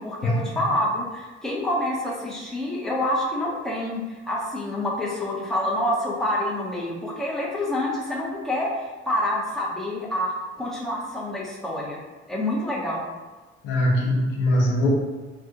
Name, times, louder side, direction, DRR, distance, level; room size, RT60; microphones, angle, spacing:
voice 1, 0.0-12.0 12.3-13.0, left 1 dB, ahead, -5 dB, 0.8 m, -27 dB
voice 2, 13.6-14.9, left 1 dB, 85° left, -2 dB, 0.7 m, -22 dB
3.3 x 2.4 x 2.8 m, 1.3 s
hypercardioid pair, 50°, 29 cm